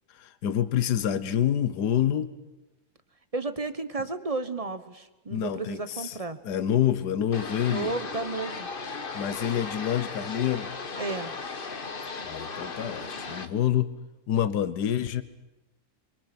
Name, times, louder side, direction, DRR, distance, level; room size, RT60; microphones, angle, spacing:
voice 1, 0.1-2.3 5.3-6.2 6.4-7.9 9.1-10.7 12.2-14.0 14.3-15.2, left 10 dB, 75° left, 13 dB, 1.6 m, -27 dB
voice 2, 3.3-6.4 7.7-8.7 11.0-11.3, right 3 dB, 25° right, 11 dB, 1.1 m, -33 dB
sound 1, 7.3-13.5, left 4 dB, 35° left, 1.3 m, -36 dB
28.5 x 23.5 x 6.1 m, 0.99 s
omnidirectional pair, 1.8 m